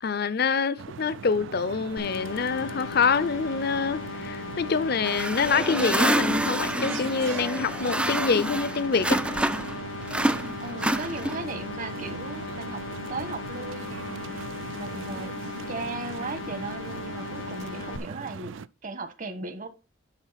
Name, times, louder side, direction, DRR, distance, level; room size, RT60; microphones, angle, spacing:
voice 1, 0.0-9.2, left 5 dB, 55° left, 0.6 m, -26 dB
sound 1, 0.8-18.7, right 6 dB, 75° right, 0.4 m, -40 dB
sound 2, 2.0-18.0, left 4 dB, 85° left, 0.8 m, -38 dB
sound 3, 5.0-9.8 10.1-11.6, right 1 dB, 5° right, 0.3 m, -27 dB
voice 2, 10.6-14.5 14.7-15.3 15.7-19.7, right 3 dB, 45° right, 1.3 m, -37 dB
10.5 x 3.8 x 5.7 m
head